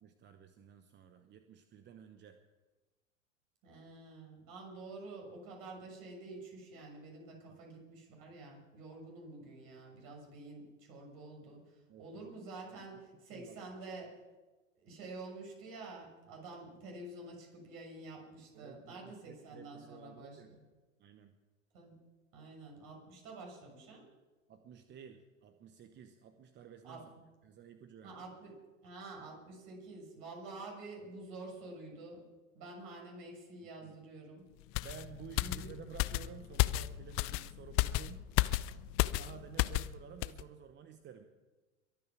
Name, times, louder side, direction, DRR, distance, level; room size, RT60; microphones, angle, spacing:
voice 1, 0.0-2.4 7.5-7.6 8.3-8.4 11.9-12.3 12.9-13.0 13.3-13.6 18.5-20.5 21.0-21.4 24.5-27.1 27.4-28.3 33.6-34.0 34.8-38.3 39.1-41.3, right 8 dB, 25° right, 8 dB, 0.9 m, -53 dB
voice 2, 3.6-14.2 14.8-20.6 21.7-22.0 22.3-24.1 26.8-27.2 28.0-32.2 32.5-34.5 35.4-35.7, right 2 dB, 50° right, 1 dB, 6.7 m, -49 dB
sound 1, 34.7-39.9 40.2-40.4, left 18 dB, 35° left, 0.5 m, -33 dB
22.5 x 9.4 x 6.2 m, 1.2 s
hypercardioid pair, 95°, 42 cm